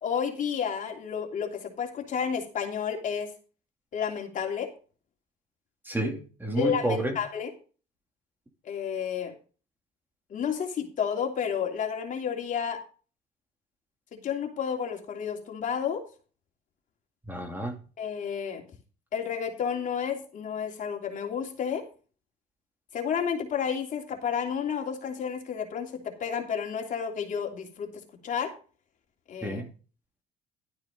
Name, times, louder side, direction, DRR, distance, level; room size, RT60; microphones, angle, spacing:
voice 1, 0.0-3.3 3.9-4.7 6.6-7.5 8.6-9.3 10.3-12.8 14.1-16.0 18.0-18.6 19.1-21.8 22.9-27.9 28.2-28.5 29.3-29.6, left 7 dB, 50° left, 3.1 m, -31 dB
voice 2, 5.8-7.2 17.3-17.8 29.4-29.7, right 1 dB, 10° right, 2.6 m, -30 dB
12.5 x 9.4 x 3.8 m
cardioid pair, 110°, 17 cm